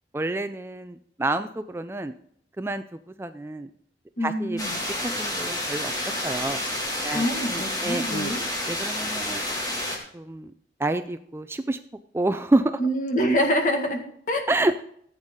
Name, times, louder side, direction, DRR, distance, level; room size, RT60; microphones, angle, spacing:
voice 1, 0.1-2.1 2.6-3.7 4.2-4.6 5.0-6.6 7.0-8.3 8.7-9.4 10.1-10.5 10.8-11.8 12.1-12.8 14.5-14.9, right 2 dB, 15° right, 10 dB, 0.3 m, -28 dB
voice 2, 4.2-4.7 7.1-8.4 12.8-14.4, equal, 45° left, 4 dB, 1.8 m, -25 dB
sound 1, 4.6-10.0, left 1 dB, 20° left, 2.1 m, -29 dB
14.5 x 8.1 x 3.7 m, 0.68 s
head